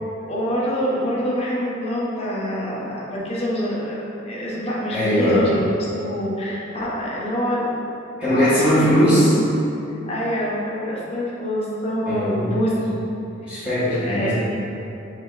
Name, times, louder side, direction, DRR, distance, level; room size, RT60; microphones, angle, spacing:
voice 1, 0.2-7.8 8.3-9.0 10.1-13.0 13.5-13.7 14.1-14.3, equal, 30° left, -5 dB, 0.7 m, -26 dB
voice 2, 4.9-5.5 8.2-9.4 12.0-12.5 13.4-14.3, equal, 5° right, -15 dB, 1.2 m, -19 dB
4.8 x 3.1 x 2.4 m, 2.9 s
head